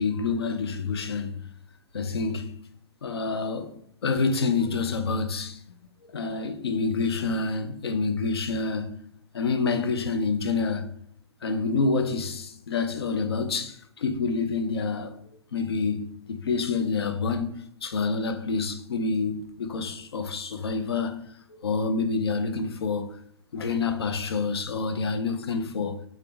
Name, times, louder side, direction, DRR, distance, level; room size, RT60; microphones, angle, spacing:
voice 1, 0.0-1.4 1.9-2.6 3.0-3.8 4.0-5.6 6.1-9.0 9.3-10.9 11.4-15.2 15.5-21.3 21.6-23.2 23.5-26.0, left 4 dB, 65° left, 0.5 m, -27 dB
3.4 x 2.7 x 3.6 m
figure-of-eight pair, 115°, 14 cm